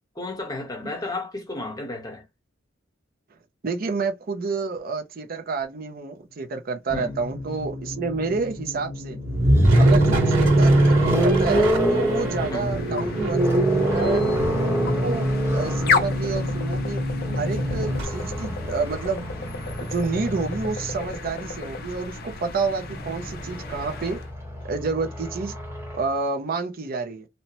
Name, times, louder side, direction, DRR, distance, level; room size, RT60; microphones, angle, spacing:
voice 1, 0.2-2.2 6.9-7.2 9.1-9.2 12.5-12.7 18.4-18.6, left 2 dB, 20° left, 0.9 m, -33 dB
voice 2, 3.6-9.2 9.7-17.0 17.4-19.3 19.8-24.2 24.6-25.6 25.9-27.3, right 4 dB, 50° right, 0.5 m, -29 dB
sound 1, 6.9-18.0, equal, 75° right, 1.5 m, -30 dB
sound 2, 9.2-21.2 22.4-26.0, right 1 dB, 15° right, 0.9 m, -23 dB
sound 3, 10.9-24.3, left 5 dB, 50° left, 0.5 m, -33 dB
2.7 x 2.0 x 2.9 m
head